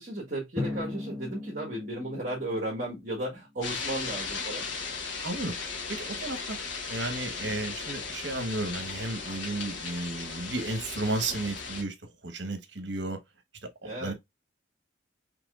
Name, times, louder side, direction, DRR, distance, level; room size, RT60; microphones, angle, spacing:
voice 1, 0.0-4.6 13.8-14.1, right 1 dB, 40° right, 1.5 m, -34 dB
Drum, 0.6-3.3, left 2 dB, 15° right, 1.3 m, -38 dB
sound 1, 3.6-11.8, left 4 dB, 75° left, 1.4 m, -36 dB
voice 2, 5.2-5.5 5.9-6.6 6.9-11.9 12.2-13.2 13.8-14.1, right 2 dB, 65° right, 1.2 m, -33 dB
6.0 x 3.3 x 2.4 m
head